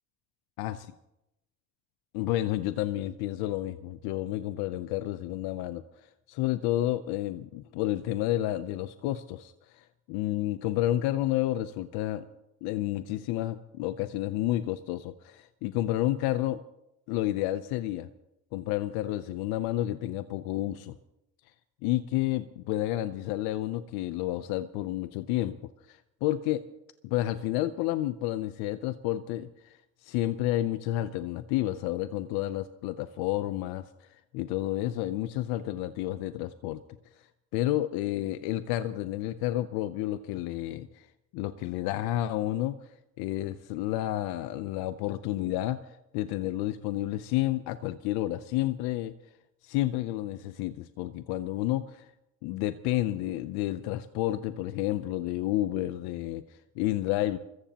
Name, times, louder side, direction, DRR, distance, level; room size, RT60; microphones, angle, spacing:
voice 1, 2.1-5.8 6.3-12.3 12.6-16.6 17.1-18.1 18.5-20.9 21.8-25.6 25.9-26.6 27.0-33.8 34.3-36.8 37.5-41.1 41.3-42.8 43.2-45.8 46.1-49.1 49.6-52.1 52.4-57.4, left 15 dB, 85° left, 12 dB, 0.7 m, -30 dB
27.0 x 14.5 x 2.9 m, 0.90 s
supercardioid pair, 80°, 37 cm